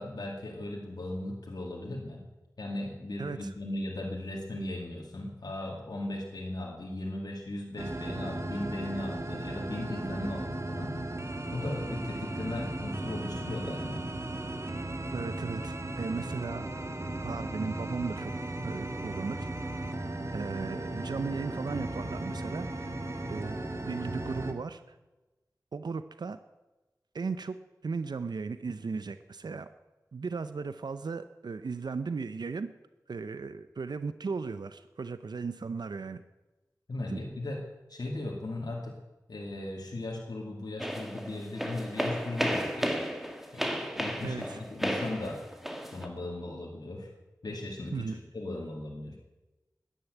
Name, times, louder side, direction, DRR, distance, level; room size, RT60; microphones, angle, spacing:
voice 1, 0.0-2.2 2.6-11.2 11.5-14.1 36.9-37.6 37.9-39.0 39.3-43.0 43.5-45.4 45.9-47.1 47.4-49.2, left 1 dB, 75° left, -2 dB, 2.3 m, -37 dB
voice 2, 3.2-3.5 15.1-16.7 17.2-18.3 18.6-19.5 20.3-23.0 23.3-23.6 23.8-24.8 25.7-26.4 27.1-27.6 27.8-29.7 30.1-32.7 33.1-36.2 37.1-37.2 44.2-44.6 47.9-48.2, right 4 dB, 80° right, 11 dB, 0.6 m, -36 dB
sound 1, 7.8-24.5, right 1 dB, 45° right, 1.7 m, -36 dB
sound 2, 40.8-46.1, equal, 5° right, 2.0 m, -33 dB
13.0 x 10.0 x 9.1 m, 1.1 s
wide cardioid pair, 50°, 7 cm